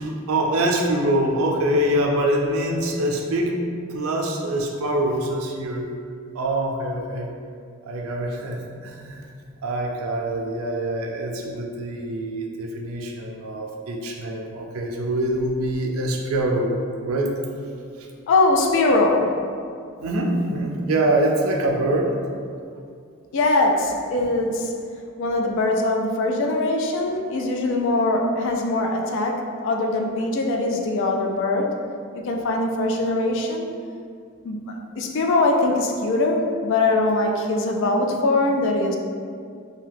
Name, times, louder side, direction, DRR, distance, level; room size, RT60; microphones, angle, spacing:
voice 1, 0.0-3.6 3.9-5.9 6.3-7.3 7.8-9.3 9.6-16.7 17.0-17.3 20.0-22.1, right 1 dB, 80° right, 1 dB, 0.4 m, -24 dB
voice 2, 18.3-19.4 23.3-24.7 25.2-31.7 32.1-33.7 34.4-39.0, left 2 dB, 60° left, 2 dB, 0.3 m, -22 dB
2.6 x 2.2 x 3.4 m, 2.3 s
head